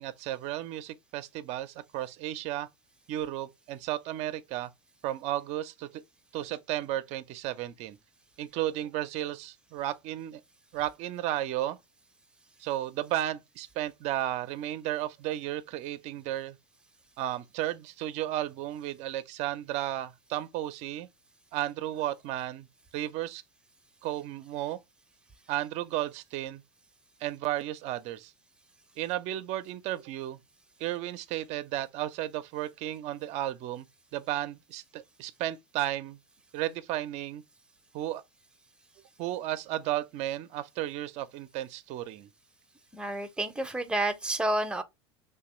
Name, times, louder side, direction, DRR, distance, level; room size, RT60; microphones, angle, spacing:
voice 1, 0.0-2.7 3.1-4.7 5.0-6.0 6.3-8.0 8.4-10.4 10.7-11.8 12.6-16.6 17.2-21.1 21.5-22.7 22.9-23.4 24.0-24.8 25.5-26.6 27.2-28.3 29.0-30.4 30.8-33.9 34.1-36.2 36.5-37.4 37.9-38.2 39.2-42.3, right 13 dB, 50° right, 0.5 m, -33 dB
voice 2, 42.9-44.8, right 1 dB, 5° right, 0.6 m, -30 dB
2.9 x 2.2 x 4.1 m
hypercardioid pair, 90°, 14 cm